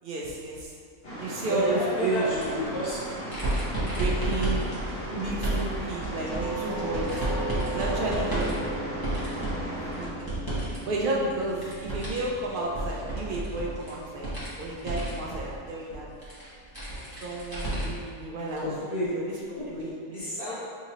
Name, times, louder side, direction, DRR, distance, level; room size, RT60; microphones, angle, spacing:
voice 1, 0.0-0.7 1.2-2.7 3.9-4.7 5.1-7.2 7.7-9.0 9.3-10.3 10.9-14.3 14.6-16.1 17.2-18.7 19.1-19.2 19.7-20.2, right 2 dB, 75° right, -4 dB, 0.4 m, -32 dB
sound 1, 1.0-10.1, equal, 45° left, 1.2 m, -37 dB
voice 2, 1.5-3.0 4.1-4.2 8.2-8.4 10.1-10.3 18.5-19.7 20.1-20.5, left 1 dB, 85° left, -13 dB, 2.2 m, -31 dB
sound 2, 2.3-10.8 11.1-18.1 18.5-18.6 19.8-19.9, right 1 dB, 15° left, 1.1 m, -32 dB
Doorbell, 6.3-15.1, right 2 dB, 55° right, 1.1 m, -37 dB
5.8 x 2.8 x 2.9 m, 2.1 s
omnidirectional pair, 1.6 m